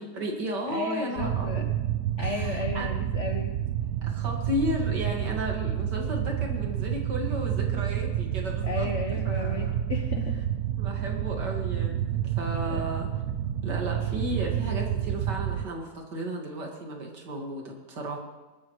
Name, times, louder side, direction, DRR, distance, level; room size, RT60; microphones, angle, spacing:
voice 1, 0.0-1.7 2.2-2.9 4.0-8.9 9.2-9.8 10.8-13.1 13.6-18.2, equal, 90° right, 1 dB, 2.7 m, -34 dB
voice 2, 0.7-1.6 2.2-3.5 8.6-10.4 12.7-12.8, left 3 dB, 50° left, 3 dB, 1.1 m, -34 dB
sound 1, 1.2-15.6, right 10 dB, 65° right, 0.9 m, -29 dB
22.0 x 12.0 x 3.2 m, 1.1 s
omnidirectional pair, 1.8 m